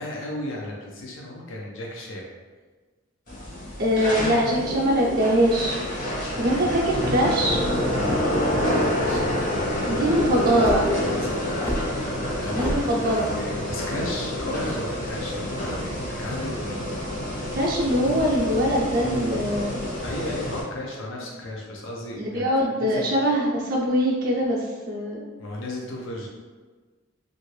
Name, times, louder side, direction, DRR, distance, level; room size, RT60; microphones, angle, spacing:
voice 1, 0.0-2.3 6.4-6.6 8.0-10.5 10.9-16.8 20.0-22.5 22.7-23.2 25.4-26.3, left 1 dB, 85° left, -2 dB, 0.5 m, -35 dB
sound 1, 3.3-20.6, left 1 dB, 45° left, 0.8 m, -28 dB
voice 2, 3.8-5.8 6.3-7.6 9.9-10.9 12.5-13.3 17.5-19.8 22.1-25.3, equal, 50° right, -5 dB, 0.5 m, -23 dB
sound 2, 6.9-7.4 8.0-8.4 9.1-9.5 10.6-10.8 11.6-11.8 12.6-12.8, equal, 10° left, 0.4 m, -29 dB
2.8 x 2.5 x 3.0 m, 1.4 s
head